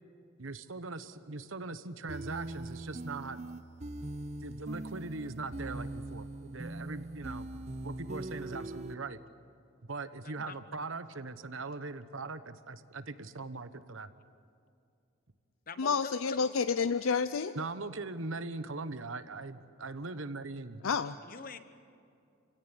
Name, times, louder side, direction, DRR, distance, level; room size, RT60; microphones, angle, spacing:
voice 1, 0.4-3.4 4.4-7.5 7.8-9.2 9.9-14.1 17.5-20.9, right 3 dB, 75° right, 11 dB, 1.2 m, -40 dB
sound 1, 2.1-8.9, right 2 dB, 35° right, 0.7 m, -41 dB
voice 2, 10.2-10.6 15.7-16.5 21.0-21.6, left 4 dB, 45° left, 11 dB, 1.2 m, -45 dB
voice 3, 15.8-17.5 20.8-21.2, left 5 dB, 85° left, 13 dB, 0.5 m, -29 dB
29.0 x 17.0 x 9.9 m, 2.5 s
head